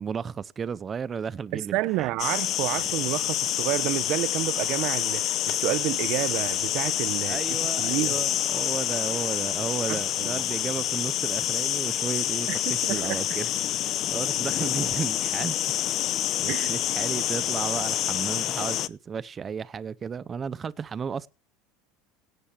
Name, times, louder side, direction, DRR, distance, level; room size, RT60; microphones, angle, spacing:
voice 1, 0.0-2.1 7.3-15.7 16.0-21.3, right 6 dB, 25° right, 0.7 m, -34 dB
voice 2, 1.5-8.2 9.9-10.4 12.5-13.2 16.5-16.7, right 18 dB, 60° right, 0.8 m, -30 dB
sound 1, 2.2-18.9, left 12 dB, 45° left, 0.7 m, -27 dB
17.5 x 7.7 x 7.4 m
supercardioid pair, 130°, 0 cm